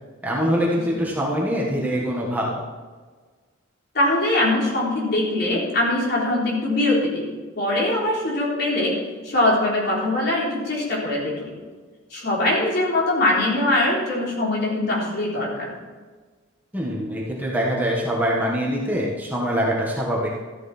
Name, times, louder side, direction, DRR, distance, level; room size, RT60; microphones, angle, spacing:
voice 1, 0.2-2.6 16.7-20.3, equal, 10° right, -4 dB, 1.6 m, -24 dB
voice 2, 3.9-7.2 7.6-9.0 9.2-11.5 12.1-15.7, left 1 dB, 50° left, -4 dB, 3.9 m, -22 dB
14.0 x 10.5 x 4.4 m, 1.4 s
head